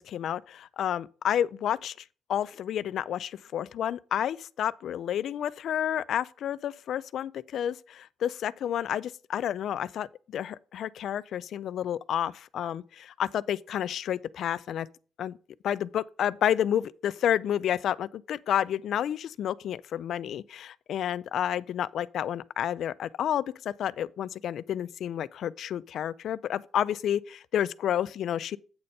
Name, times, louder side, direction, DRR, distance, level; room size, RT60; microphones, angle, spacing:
voice 1, 0.0-2.0 2.3-10.1 10.3-14.9 15.2-15.4 15.6-28.6, left 10 dB, 70° left, 0.4 m, -30 dB
8.6 x 4.2 x 6.5 m
cardioid pair, 90°, 0 cm